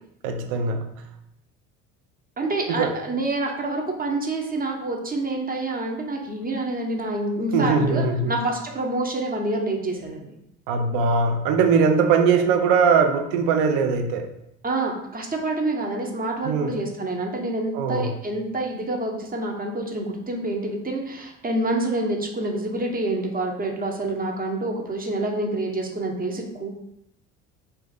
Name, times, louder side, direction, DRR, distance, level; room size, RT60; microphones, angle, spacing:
voice 1, 0.2-0.9 2.7-2.9 7.5-8.3 10.7-14.3 16.4-16.7 17.7-18.1, right 5 dB, 70° right, 6 dB, 0.6 m, -21 dB
voice 2, 2.4-10.3 14.6-26.7, right 2 dB, 25° right, 1 dB, 0.8 m, -27 dB
2.5 x 2.5 x 4.0 m, 0.79 s
hypercardioid pair, 60°, 36 cm